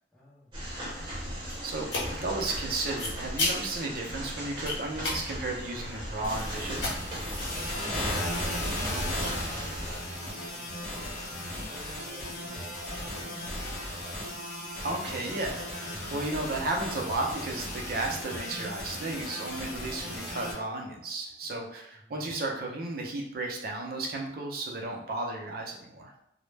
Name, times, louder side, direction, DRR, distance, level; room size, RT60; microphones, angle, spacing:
voice 1, 0.1-0.9 7.5-14.1 21.4-21.6 22.0-22.1, left 1 dB, 5° left, -6 dB, 0.6 m, -51 dB
sound 1, 0.5-10.0, equal, 25° right, 0.8 m, -38 dB
sound 2, 0.6-7.4, left 2 dB, 90° left, 0.8 m, -37 dB
voice 2, 1.6-7.0 14.8-26.1, right 2 dB, 55° right, 0 dB, 0.5 m, -34 dB
sound 3, 6.2-20.5, left 1 dB, 45° left, 0.7 m, -36 dB
2.0 x 2.0 x 3.2 m, 0.77 s
head